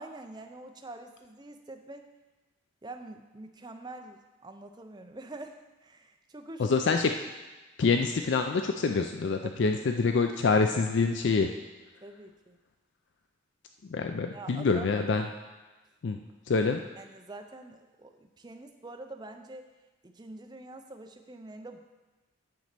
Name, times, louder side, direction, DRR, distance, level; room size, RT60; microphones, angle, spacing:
voice 1, 0.0-2.1 2.8-6.7 9.4-10.0 12.0-12.6 14.3-14.9 17.0-19.7 20.0-21.8, right 2 dB, 20° right, 5 dB, 0.5 m, -45 dB
voice 2, 6.6-7.1 7.8-11.5 13.8-15.3 16.0-16.2 16.5-16.8, left 4 dB, 60° left, 5 dB, 0.4 m, -26 dB
9.3 x 4.2 x 6.7 m, 1.2 s
head